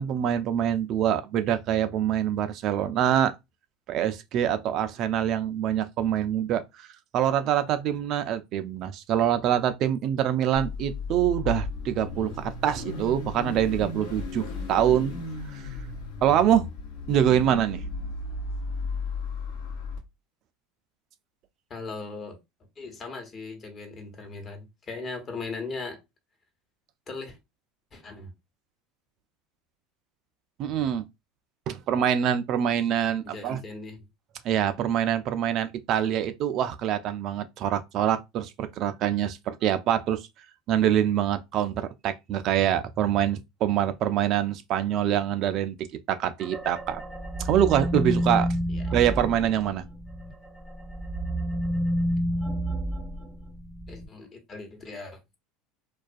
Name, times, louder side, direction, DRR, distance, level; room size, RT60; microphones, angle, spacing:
voice 1, 0.0-3.3 3.9-6.9 7.1-15.2 15.5-15.6 16.2-16.7 17.1-17.9 30.6-31.0 31.7-33.6 34.4-40.2 40.7-47.0 47.4-48.5 48.9-49.8, right 10 dB, 50° right, 0.3 m, -25 dB
Car / Idling / Accelerating revving vroom, 10.5-20.0, left 3 dB, 70° left, 0.9 m, -35 dB
voice 2, 21.7-22.4 22.8-26.0 27.1-27.4 27.9-28.3 33.2-34.1 48.7-48.8 53.9-55.2, left 3 dB, 35° left, 0.9 m, -38 dB
sound 1, 46.4-50.3 50.7-54.0, equal, 5° right, 0.7 m, -29 dB
2.3 x 2.2 x 2.5 m
hypercardioid pair, 90°, 0 cm